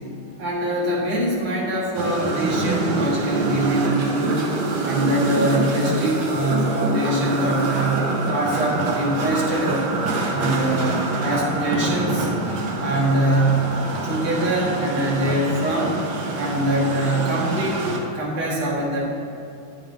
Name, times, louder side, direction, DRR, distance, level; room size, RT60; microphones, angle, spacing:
voice 1, 0.4-4.5 4.8-9.9 10.3-12.3 12.8-13.7 14.0-16.0 16.3-17.9 18.1-19.0, right 1 dB, 85° right, -4 dB, 2.6 m, -23 dB
sound 1, 1.9-18.0, right 3 dB, 60° right, 1.4 m, -26 dB
10.5 x 7.0 x 3.5 m, 2.5 s
omnidirectional pair, 2.3 m